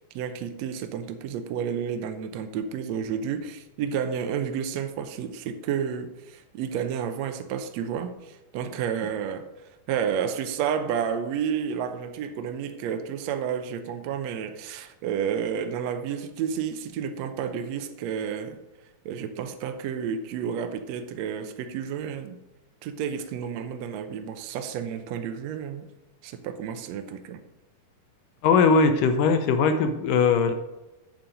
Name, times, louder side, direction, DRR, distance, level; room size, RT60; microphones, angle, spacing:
voice 1, 0.1-9.4 9.9-18.6 19.0-22.4 22.8-25.8 26.2-27.4, right 7 dB, 80° right, 7 dB, 1.5 m, -31 dB
voice 2, 28.4-30.5, left 5 dB, 80° left, 8 dB, 2.2 m, -20 dB
7.7 x 7.3 x 5.2 m, 1.0 s
omnidirectional pair, 4.0 m